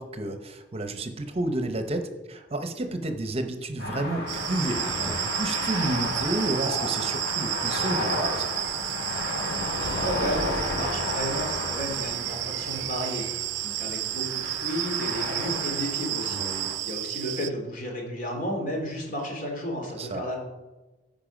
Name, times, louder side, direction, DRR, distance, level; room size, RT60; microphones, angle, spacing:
voice 1, 0.0-8.4 16.3-16.7 20.0-20.2, right 2 dB, 35° right, 7 dB, 0.8 m, -31 dB
sound 1, 3.8-16.7, left 1 dB, 70° left, 3.7 m, -32 dB
sound 2, 4.3-17.5, right 15 dB, 85° right, 0.4 m, -32 dB
voice 2, 9.8-20.4, equal, 50° left, 1 dB, 2.6 m, -33 dB
14.0 x 5.3 x 5.1 m, 1.1 s
head